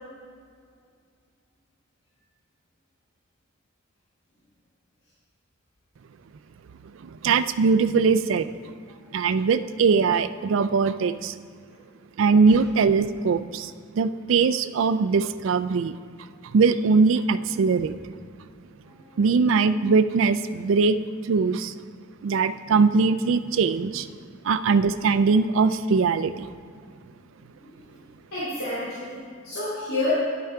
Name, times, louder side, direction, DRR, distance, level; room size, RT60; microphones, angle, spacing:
voice 1, 7.0-8.5 9.1-11.3 12.2-15.9 16.5-18.0 19.2-21.0 21.2-21.7 22.2-24.1 24.4-26.5, right 4 dB, 65° right, 13 dB, 0.4 m, -21 dB
voice 2, 18.9-19.2 27.5-28.0 28.3-30.1, left 2 dB, 75° left, -10 dB, 2.9 m, -31 dB
10.5 x 8.4 x 4.5 m, 2.1 s
head